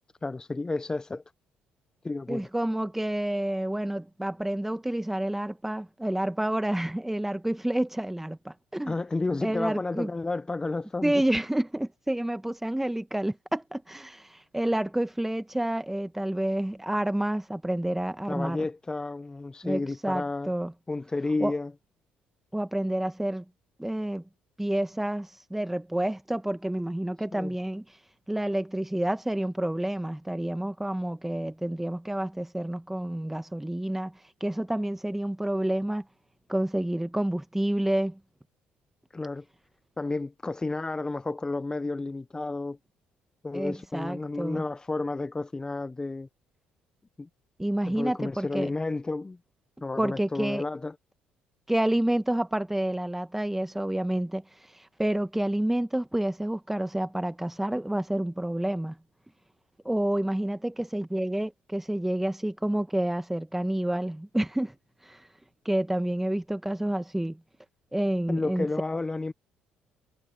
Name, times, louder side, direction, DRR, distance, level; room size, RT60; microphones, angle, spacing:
voice 1, 0.2-1.2 2.0-2.5 8.9-11.2 18.3-20.5 20.9-21.7 27.3-27.5 39.1-39.4 40.0-42.8 43.4-46.3 47.2-47.3 47.8-49.4 49.8-51.0 68.3-69.3, left 3 dB, 20° left, 0.7 m, -31 dB
voice 2, 2.3-8.9 9.4-10.1 11.0-18.7 19.6-20.7 21.4-21.5 22.5-23.4 23.8-24.2 24.6-27.8 28.3-34.1 34.4-36.0 36.5-38.2 43.5-44.6 47.6-48.7 50.0-50.6 51.7-54.4 54.7-58.9 59.8-64.7 65.0-65.3 65.6-67.4 67.9-68.7, right 1 dB, 5° right, 1.3 m, -29 dB
supercardioid pair, 70°, 4 cm